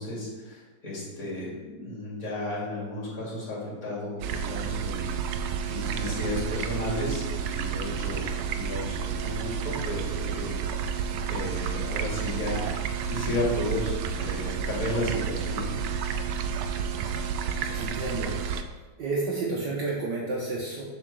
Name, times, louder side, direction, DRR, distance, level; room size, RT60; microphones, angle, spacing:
voice 1, 0.0-10.5 10.8-10.9 11.3-15.7, left 1 dB, 40° left, -5 dB, 3.0 m, -33 dB
sound 1, 4.2-18.6, right 7 dB, 85° right, 1.4 m, -30 dB
voice 2, 17.7-18.6 19.0-20.8, right 3 dB, 65° right, -4 dB, 1.6 m, -31 dB
7.6 x 4.3 x 6.2 m, 1.3 s
omnidirectional pair, 2.2 m